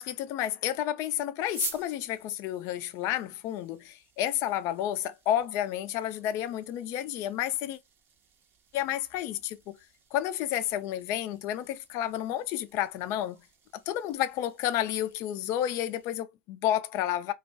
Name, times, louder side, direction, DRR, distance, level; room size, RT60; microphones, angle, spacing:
voice 1, 0.0-7.8 8.7-9.7 10.1-13.4 13.7-17.3, left 12 dB, 45° left, 0.3 m, -31 dB
sound 1, 1.4-16.2, right 6 dB, 35° right, 0.6 m, -49 dB
2.3 x 2.1 x 2.5 m
hypercardioid pair, 105°, 7 cm